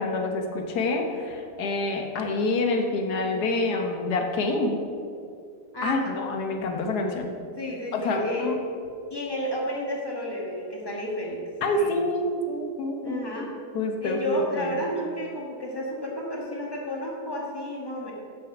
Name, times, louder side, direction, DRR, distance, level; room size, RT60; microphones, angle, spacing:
voice 1, 0.0-4.8 5.8-7.3 7.9-8.6 11.6-13.5 13.7-14.8, left 2 dB, 85° left, 3 dB, 1.5 m, -27 dB
voice 2, 5.7-6.2 7.6-8.5 9.1-11.4 11.8-12.0 13.0-13.5 14.0-18.1, equal, 15° left, -3 dB, 1.5 m, -31 dB
7.5 x 6.4 x 5.9 m, 2.5 s
omnidirectional pair, 1.6 m